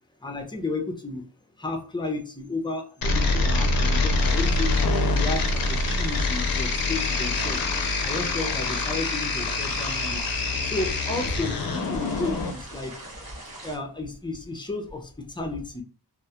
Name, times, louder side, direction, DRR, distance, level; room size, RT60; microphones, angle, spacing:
voice 1, 0.2-1.2 1.6-4.7 5.1-7.7 8.0-10.2 10.6-12.9 13.6-15.0 15.4-15.8, left 2 dB, 10° left, 2 dB, 0.5 m, -32 dB
sound 1, 3.0-12.5, left 3 dB, 60° left, 0.5 m, -25 dB
sound 2, 4.2-13.8, right 1 dB, 60° right, 0.9 m, -44 dB
2.2 x 2.1 x 2.8 m, 0.40 s
wide cardioid pair, 85°, 41 cm